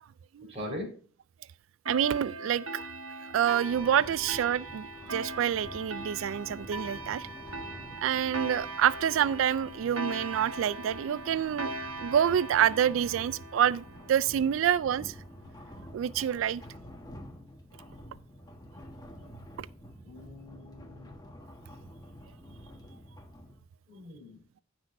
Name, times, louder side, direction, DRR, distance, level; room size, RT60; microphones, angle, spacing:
voice 1, 0.5-0.9 20.0-21.2 23.9-24.4, left 1 dB, 35° right, 4.5 m, -41 dB
voice 2, 1.9-2.9 3.2-7.3 8.0-15.1 15.9-16.6 19.6-19.7, right 9 dB, 70° right, 0.3 m, -27 dB
sound 1, 1.9-14.9, right 2 dB, 90° right, 1.4 m, -40 dB
sound 2, 3.7-23.6, equal, 20° left, 1.3 m, -49 dB
15.0 x 6.1 x 2.6 m
head